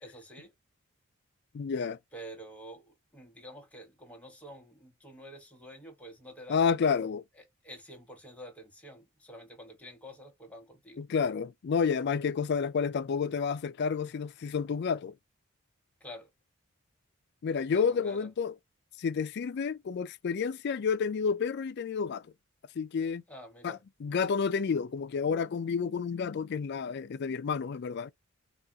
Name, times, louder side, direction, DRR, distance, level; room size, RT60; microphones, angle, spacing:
voice 1, 0.0-0.5 2.1-6.8 7.4-11.0 16.0-16.3 17.7-18.3 23.3-23.8, equal, 5° left, 1.0 m, -48 dB
voice 2, 1.5-2.0 6.5-7.2 11.0-15.1 17.4-18.5 19.0-22.2 22.8-23.2 23.6-28.1, left 6 dB, 50° left, 0.3 m, -30 dB
4.1 x 2.4 x 2.2 m
head